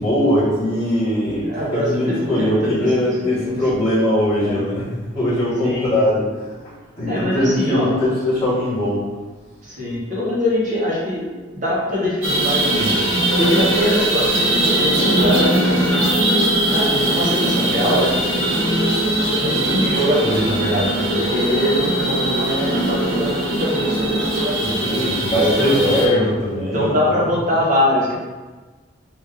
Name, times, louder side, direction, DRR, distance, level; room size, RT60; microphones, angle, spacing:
voice 1, 0.0-9.1 13.2-13.4 24.4-24.5 24.8-27.3, left 1 dB, 15° left, -17 dB, 1.4 m, -21 dB
voice 2, 1.4-3.6 4.4-4.6 5.6-5.9 7.1-8.0 9.6-13.0 13.4-16.2 16.6-19.0 19.4-24.8 25.3-26.2 26.7-28.1, left 1 dB, 40° right, -7 dB, 1.1 m, -23 dB
sound 1, 12.2-26.1, right 1 dB, 85° right, 1.2 m, -20 dB
3.5 x 2.6 x 3.3 m, 1.3 s
head